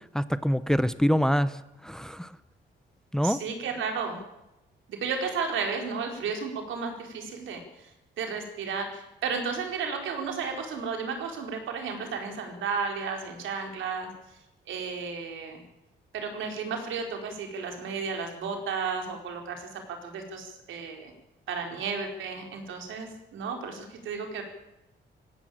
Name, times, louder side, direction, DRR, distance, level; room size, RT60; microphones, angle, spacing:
voice 1, 0.1-2.3 3.1-3.4, equal, 5° left, 15 dB, 0.7 m, -25 dB
voice 2, 3.2-4.2 4.9-7.9 8.2-14.1 14.7-15.6 16.1-21.1 21.5-24.4, right 5 dB, 90° right, 3 dB, 4.6 m, -33 dB
19.5 x 16.0 x 8.8 m, 0.90 s
cardioid pair, 135°, 19 cm